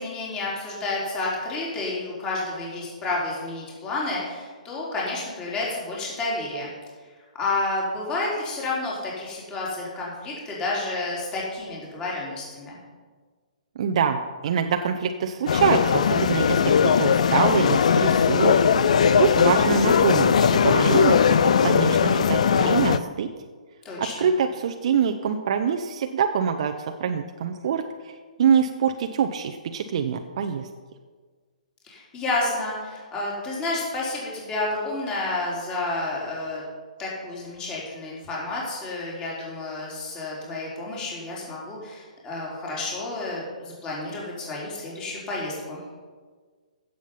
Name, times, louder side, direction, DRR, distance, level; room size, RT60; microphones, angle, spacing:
voice 1, 0.0-6.7 7.3-12.8 23.8-24.3 31.8-36.6 37.0-45.8, left 2 dB, 20° left, -5 dB, 4.0 m, -30 dB
voice 2, 13.8-18.6 18.9-23.3 24.0-26.7 27.0-30.7, right 7 dB, 50° right, 5 dB, 0.8 m, -25 dB
sound 1, 15.5-23.0, left 7 dB, 55° left, 0.6 m, -19 dB
15.5 x 7.4 x 5.7 m, 1.5 s
figure-of-eight pair, 125°, 4 cm